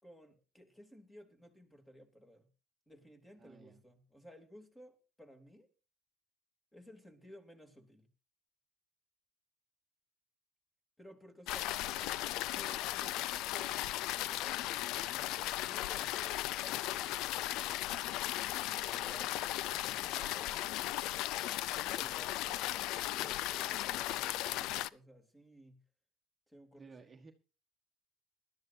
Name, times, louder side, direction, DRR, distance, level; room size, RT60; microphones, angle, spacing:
voice 1, 0.0-2.5 2.9-5.7 6.7-8.1 11.0-11.7 12.5-17.1 17.8-21.2 21.6-25.8 26.5-26.9, equal, 10° left, 6 dB, 3.2 m, -57 dB
voice 2, 3.4-3.8 22.0-22.3 26.7-27.3, right 4 dB, 25° right, 3 dB, 1.4 m, -56 dB
sound 1, 11.5-24.9, left 15 dB, 75° left, 0.5 m, -36 dB
20.0 x 12.5 x 2.8 m, 0.33 s
cardioid pair, 115°, 0 cm